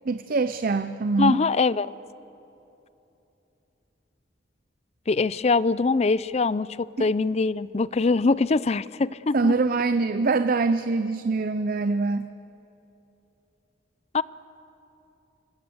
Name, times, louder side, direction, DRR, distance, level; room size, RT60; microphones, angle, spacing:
voice 1, 0.1-1.4 7.0-7.1 9.3-12.3, right 3 dB, 50° right, 11 dB, 0.5 m, -24 dB
voice 2, 1.2-1.9 5.1-9.5 14.1-14.2, left 3 dB, 35° left, 19 dB, 0.4 m, -23 dB
26.5 x 20.5 x 7.9 m, 2.9 s
head